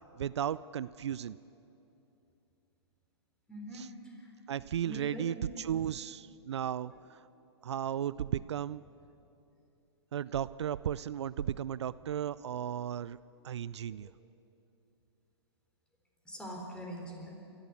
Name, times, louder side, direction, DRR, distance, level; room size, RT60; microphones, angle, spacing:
voice 1, 0.2-1.4 3.7-3.9 4.5-7.2 7.6-8.8 10.1-13.2 13.4-14.1, right 10 dB, 75° right, 18 dB, 0.5 m, -35 dB
voice 2, 3.5-4.3 4.8-5.3 6.9-7.0 14.0-14.1 16.2-17.4, equal, 5° left, 0 dB, 4.2 m, -43 dB
27.0 x 14.0 x 8.4 m, 2.8 s
hypercardioid pair, 135°, 14 cm